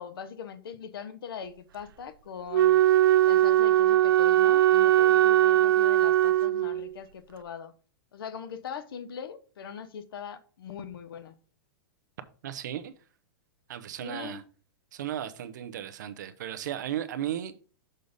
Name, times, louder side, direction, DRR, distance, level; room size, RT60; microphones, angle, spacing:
voice 1, 0.0-2.8 3.2-7.7 8.1-11.3 14.0-14.4, left 7 dB, 85° left, 0.9 m, -41 dB
Wind instrument woodwind instrument, 2.5-6.9, right 13 dB, 75° right, 0.4 m, -20 dB
voice 2, 12.4-12.9 13.7-14.4 14.9-17.6, right 11 dB, 55° right, 0.7 m, -35 dB
6.6 x 4.0 x 5.1 m
supercardioid pair, 180°, 12 cm